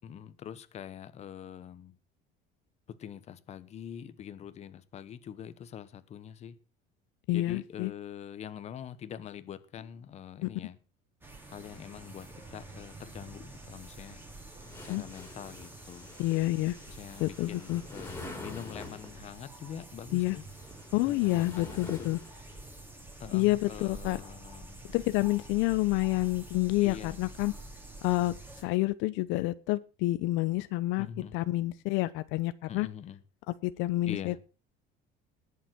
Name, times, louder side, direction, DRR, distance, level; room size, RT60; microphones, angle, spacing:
voice 1, 0.0-1.9 2.9-6.6 7.3-10.8 11.5-14.2 14.8-16.2 16.9-20.4 21.0-22.1 23.2-24.8 26.8-27.2 31.0-31.4 32.7-33.2 34.1-34.4, left 9 dB, 35° left, 1.1 m, -44 dB
voice 2, 7.3-7.9 10.4-10.5 14.9-15.0 16.2-16.8 17.2-17.8 20.1-20.4 20.9-22.2 23.3-24.2 24.9-27.5 28.0-31.1 31.3-32.9 33.5-34.4, left 19 dB, 75° left, 0.7 m, -28 dB
sound 1, 11.2-28.6, right 2 dB, 10° right, 3.7 m, -48 dB
sound 2, 14.6-19.3 20.3-22.8, left 2 dB, 10° left, 3.9 m, -46 dB
19.5 x 7.4 x 6.0 m
cardioid pair, 160°, 20 cm